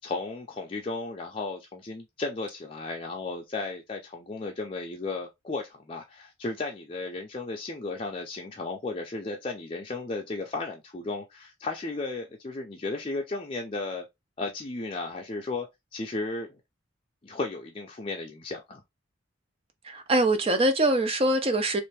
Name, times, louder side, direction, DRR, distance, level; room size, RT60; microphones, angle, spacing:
voice 1, 0.0-14.1 14.4-15.7 15.9-16.6 17.2-18.8, left 3 dB, 30° left, 0.5 m, -34 dB
voice 2, 19.8-21.8, right 1 dB, 30° right, 0.5 m, -23 dB
3.2 x 2.5 x 3.3 m
head